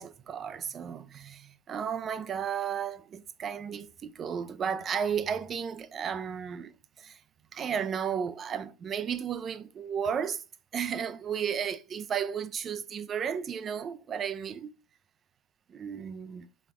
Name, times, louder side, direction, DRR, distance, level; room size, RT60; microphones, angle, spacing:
voice 1, 0.0-7.2 7.5-10.4 10.7-14.7 15.7-16.5, right 7 dB, 30° right, 0.4 m, -34 dB
4.2 x 3.1 x 3.5 m
hypercardioid pair, 100°, 0 cm